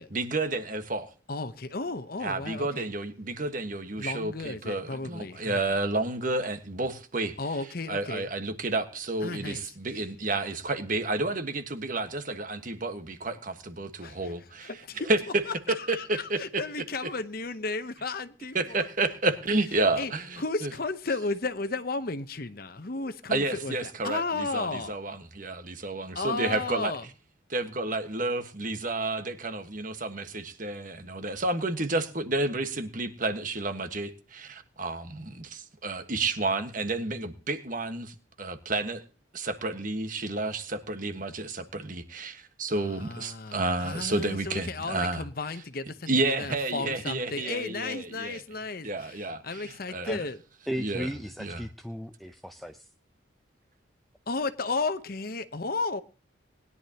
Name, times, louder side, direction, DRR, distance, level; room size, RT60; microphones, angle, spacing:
voice 1, 0.1-1.1 2.2-7.4 7.9-14.7 15.1-15.4 15.9-16.4 18.5-20.7 23.3-26.9 27.5-39.0 39.3-45.2 46.1-48.4 48.8-50.1 50.8-51.1 51.4-51.6, right 2 dB, 45° right, 1.4 m, -31 dB
voice 2, 1.3-2.9 4.0-5.8 7.4-8.3 9.2-10.0 14.0-14.3 14.6-15.1 15.5-18.9 20.0-20.1 20.4-24.9 26.1-27.1 42.8-46.1 46.4-50.4 54.3-56.0, left 3 dB, 50° left, 0.9 m, -34 dB
voice 3, 50.7-52.9, equal, ahead, 0.6 m, -36 dB
20.5 x 11.0 x 2.9 m
head